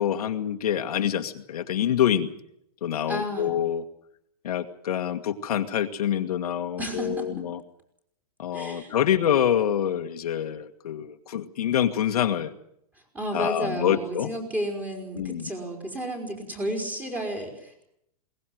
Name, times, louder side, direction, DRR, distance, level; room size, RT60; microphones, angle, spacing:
voice 1, 0.0-2.3 2.8-3.8 4.4-7.6 8.4-12.5 13.3-14.3 15.2-15.5, left 10 dB, 70° left, 5 dB, 1.8 m, -26 dB
voice 2, 3.1-3.5 6.8-7.3 8.5-8.9 13.1-17.9, right 1 dB, 10° right, 3 dB, 4.6 m, -32 dB
22.0 x 19.0 x 7.8 m, 0.74 s
hypercardioid pair, 160°, 20 cm